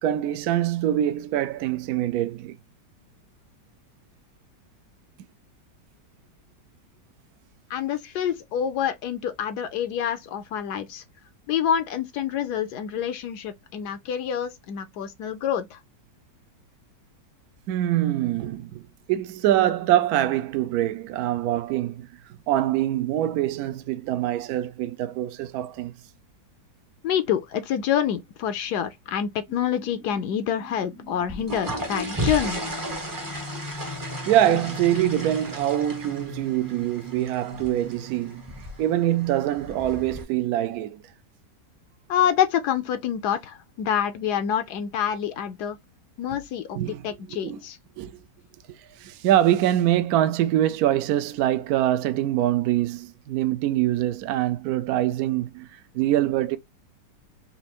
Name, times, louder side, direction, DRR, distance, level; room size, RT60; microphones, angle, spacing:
voice 1, 0.0-2.6 17.7-22.1 22.5-26.0 34.3-38.4 38.8-41.0 46.7-47.6 48.0-48.2 48.7-55.7 55.9-56.6, right 12 dB, 70° right, 0.9 m, -24 dB
voice 2, 7.7-11.0 11.5-15.8 27.0-32.6 42.1-45.8 46.2-46.8 47.0-47.8, left 9 dB, 75° left, 1.1 m, -27 dB
sound 1, 29.5-39.8, left 2 dB, 40° left, 0.4 m, -43 dB
sound 2, 31.2-40.2, equal, 20° right, 0.5 m, -35 dB
4.2 x 2.5 x 2.8 m
omnidirectional pair, 1.9 m